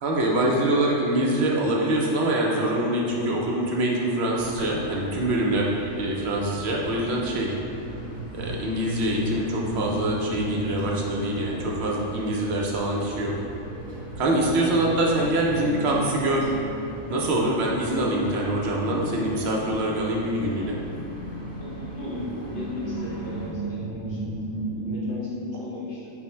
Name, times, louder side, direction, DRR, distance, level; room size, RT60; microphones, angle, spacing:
voice 1, 0.0-7.5 8.3-13.3 14.2-16.5 17.1-20.8, right 1 dB, 65° right, -2 dB, 0.7 m, -24 dB
sound 1, 4.4-23.5, right 1 dB, 5° left, 1.0 m, -42 dB
sound 2, 5.7-25.1, right 1 dB, 85° left, 1.2 m, -37 dB
voice 2, 21.6-26.1, left 2 dB, 60° left, -6 dB, 0.9 m, -36 dB
4.4 x 2.0 x 4.2 m, 2.6 s
omnidirectional pair, 1.5 m